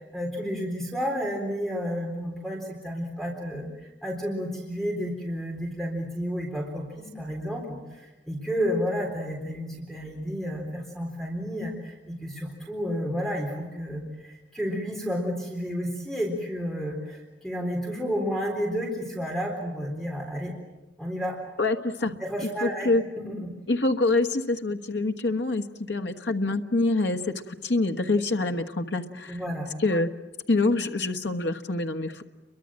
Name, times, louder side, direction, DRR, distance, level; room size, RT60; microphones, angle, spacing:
voice 1, 0.0-20.5 21.0-21.4 22.0-23.5 29.3-29.7, equal, ahead, 0 dB, 3.8 m, -31 dB
voice 2, 21.6-22.1 22.6-23.0 23.7-29.4 29.8-30.1 30.5-32.2, left 2 dB, 85° left, 6 dB, 1.3 m, -26 dB
29.5 x 24.0 x 7.6 m, 1.1 s
head